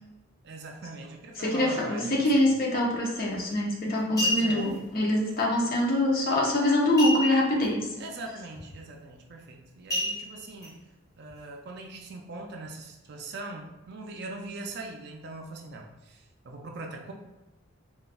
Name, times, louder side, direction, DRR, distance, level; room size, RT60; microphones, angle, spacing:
voice 1, 0.4-2.5 4.2-4.7 8.0-10.8 11.2-17.1, right 2 dB, 55° right, 2 dB, 0.4 m, -41 dB
voice 2, 1.4-8.0, left 1 dB, 45° left, -2 dB, 0.7 m, -24 dB
sound 1, 3.3-3.5 4.0-4.8 7.0-7.6 8.0-8.1 8.5-8.8 9.9-10.7 11.3-11.4, left 1 dB, 15° left, 0.8 m, -30 dB
4.0 x 2.4 x 2.3 m, 1.1 s
head